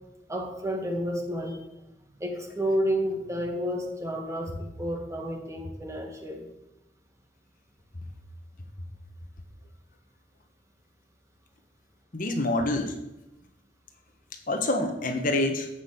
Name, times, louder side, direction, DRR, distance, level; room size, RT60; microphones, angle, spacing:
voice 1, 0.3-1.6 2.2-6.5, equal, 15° right, 2 dB, 2.1 m, -30 dB
voice 2, 12.1-13.0 14.5-15.7, left 2 dB, 45° left, 5 dB, 1.4 m, -26 dB
12.0 x 8.5 x 7.1 m, 0.96 s
head